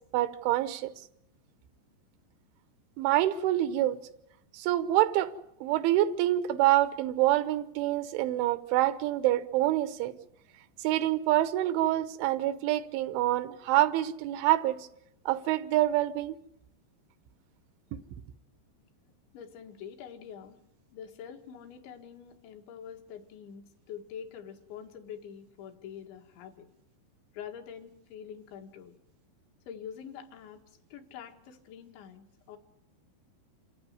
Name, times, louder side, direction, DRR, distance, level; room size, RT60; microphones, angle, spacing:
voice 1, 0.1-0.9 3.0-4.0 4.5-5.3 5.6-10.2 10.8-14.9 15.3-16.4, right 14 dB, 85° right, 3.5 m, -26 dB
voice 2, 19.3-20.6 20.9-26.7 27.3-29.0 29.7-30.6 30.9-32.6, left 8 dB, 75° left, 4.0 m, -45 dB
27.0 x 15.5 x 9.5 m
omnidirectional pair, 5.3 m